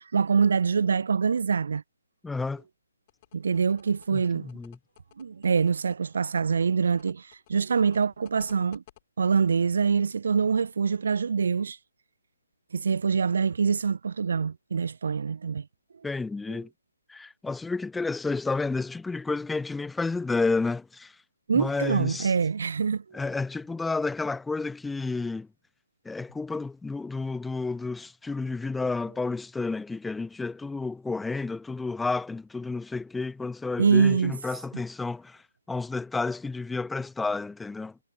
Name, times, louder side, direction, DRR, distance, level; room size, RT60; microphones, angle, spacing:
voice 1, 0.0-1.8 3.3-4.5 5.2-8.8 9.2-11.8 12.7-15.6 21.5-23.0 33.8-34.3, right 5 dB, 55° right, 0.3 m, -25 dB
voice 2, 2.2-2.6 4.1-4.8 16.0-16.7 17.1-21.2 21.5-22.3 23.1-25.5 26.0-38.0, left 3 dB, 5° left, 1.1 m, -31 dB
sound 1, 3.1-9.0, left 17 dB, 30° left, 4.6 m, -55 dB
figure-of-eight pair, 140°, 0 cm